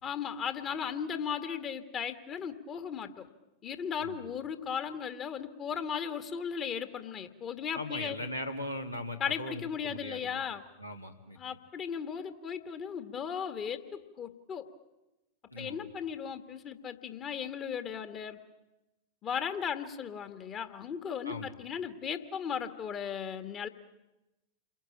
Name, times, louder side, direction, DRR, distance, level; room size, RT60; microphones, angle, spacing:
voice 1, 0.0-3.3 3.6-8.2 9.2-10.6 11.4-14.7 15.6-18.4 19.2-23.7, left 7 dB, 30° left, 10 dB, 1.9 m, -36 dB
voice 2, 7.7-10.4 10.8-11.4 15.5-15.9 21.2-21.5, left 1 dB, 90° left, 3 dB, 2.8 m, -39 dB
29.5 x 22.5 x 8.7 m, 0.99 s
figure-of-eight pair, 90°, 0 cm